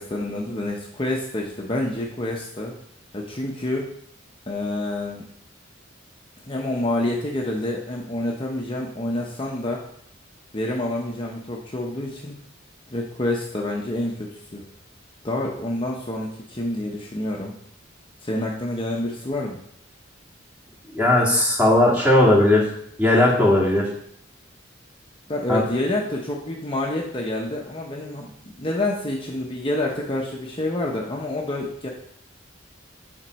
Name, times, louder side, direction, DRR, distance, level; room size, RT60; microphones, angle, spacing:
voice 1, 0.0-2.7 3.1-3.9 4.5-5.2 6.4-9.8 10.5-12.4 12.9-14.6 15.2-17.5 18.2-19.6 25.3-31.9, left 1 dB, 25° left, -1 dB, 0.9 m, -28 dB
voice 2, 20.9-22.7 23.0-23.9 25.5-25.6, left 1 dB, 10° right, -3 dB, 2.0 m, -17 dB
7.2 x 4.5 x 6.2 m, 0.69 s
head